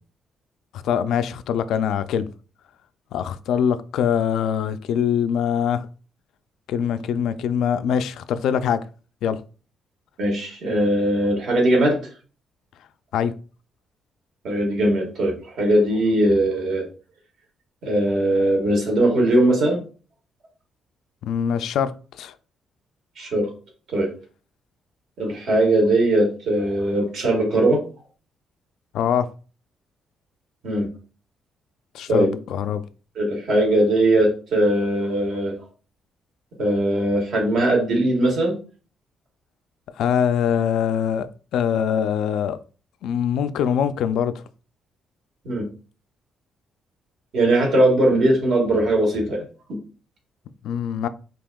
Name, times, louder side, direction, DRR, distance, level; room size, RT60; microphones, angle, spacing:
voice 1, 0.7-2.3 3.1-5.9 6.7-8.8 9.2-9.4 13.1-13.3 21.2-22.3 28.9-29.3 31.9-32.8 40.0-42.6 43.0-44.4 50.6-51.1, left 8 dB, 80° left, 0.3 m, -23 dB
voice 2, 10.2-12.0 14.4-16.8 17.8-19.8 23.2-23.5 23.9-24.1 25.2-27.8 30.6-30.9 32.1-32.3 33.1-35.5 36.6-38.5 45.4-45.7 47.3-49.4 49.7-49.8, right 1 dB, 70° right, 1.6 m, -20 dB
5.3 x 2.8 x 2.3 m
cardioid pair, 90°, 0 cm